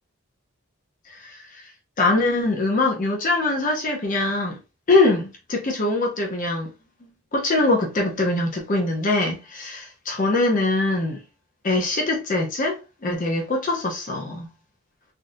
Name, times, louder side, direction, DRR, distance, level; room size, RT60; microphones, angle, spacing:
voice 1, 1.1-1.7 2.0-4.6 4.9-6.7 7.3-11.2 11.6-14.5, left 2 dB, 35° left, 0.6 m, -23 dB
3.4 x 2.5 x 2.6 m
head